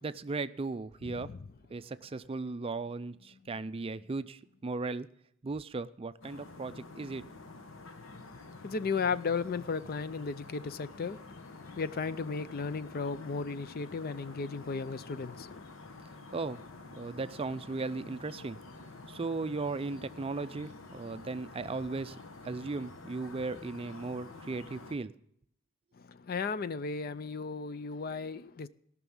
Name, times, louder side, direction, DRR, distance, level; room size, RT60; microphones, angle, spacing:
voice 1, 0.0-1.3 1.7-5.1 5.4-7.2 16.3-16.6 17.0-18.6 19.1-22.2 22.4-25.1, right 3 dB, 30° right, 0.4 m, -37 dB
sound 1, 6.2-25.0, left 3 dB, 80° left, 1.0 m, -49 dB
voice 2, 8.6-15.6 26.0-28.7, left 5 dB, 45° left, 0.5 m, -35 dB
17.5 x 6.1 x 7.2 m
head